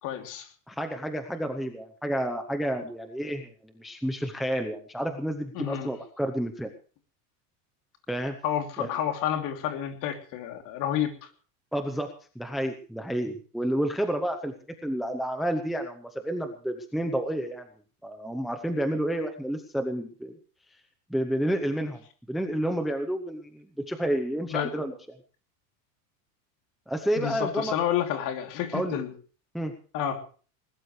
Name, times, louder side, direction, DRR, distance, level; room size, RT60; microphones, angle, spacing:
voice 1, 0.0-0.5 5.5-5.9 8.4-11.3 24.5-24.8 27.2-29.1 29.9-30.2, left 10 dB, 45° left, 5 dB, 3.1 m, -30 dB
voice 2, 0.7-6.7 8.1-8.4 8.8-8.9 11.7-14.5 14.8-17.6 18.0-20.3 21.1-22.0 22.3-24.9 26.9-27.7 28.7-29.0 29.5-29.7, right 1 dB, ahead, 5 dB, 0.8 m, -30 dB
20.5 x 20.0 x 3.2 m, 0.40 s
supercardioid pair, 165°, 46 cm